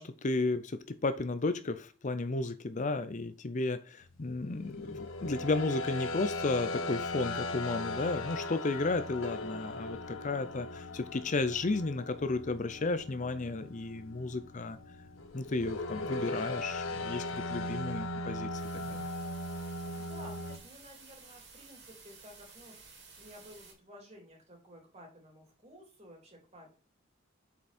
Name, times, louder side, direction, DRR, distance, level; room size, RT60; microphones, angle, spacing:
voice 1, 0.0-14.8 15.3-19.1, left 3 dB, 40° left, 0.6 m, -33 dB
sound 1, 4.2-20.6, left 2 dB, 80° left, 1.3 m, -38 dB
sound 2, 18.6-23.7, right 4 dB, 60° right, 3.7 m, -54 dB
voice 2, 19.5-26.8, equal, 35° right, 3.3 m, -54 dB
8.0 x 6.1 x 4.3 m
head